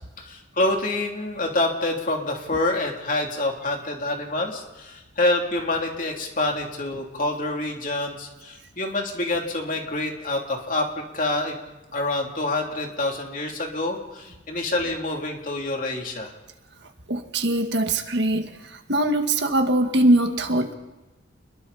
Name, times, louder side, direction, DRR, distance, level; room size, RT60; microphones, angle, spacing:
voice 1, 0.2-11.6 11.9-16.3, left 2 dB, 40° left, 1 dB, 3.2 m, -27 dB
voice 2, 17.1-18.5 18.9-20.7, right 1 dB, 60° right, 5 dB, 1.9 m, -21 dB
29.5 x 21.5 x 4.3 m, 1.0 s
head